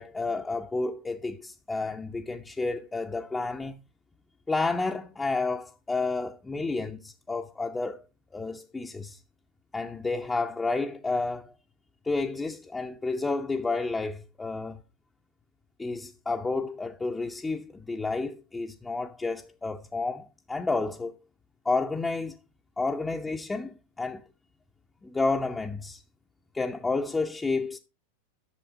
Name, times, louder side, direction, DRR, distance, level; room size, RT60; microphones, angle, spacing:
voice 1, 0.0-3.8 4.5-8.0 8.3-9.2 9.7-11.5 12.0-14.8 15.8-21.1 21.6-22.4 22.8-24.2 25.0-26.0 26.5-27.8, left 3 dB, 10° left, 0.7 m, -30 dB
11.5 x 6.9 x 4.3 m
figure-of-eight pair, 90°, 0 cm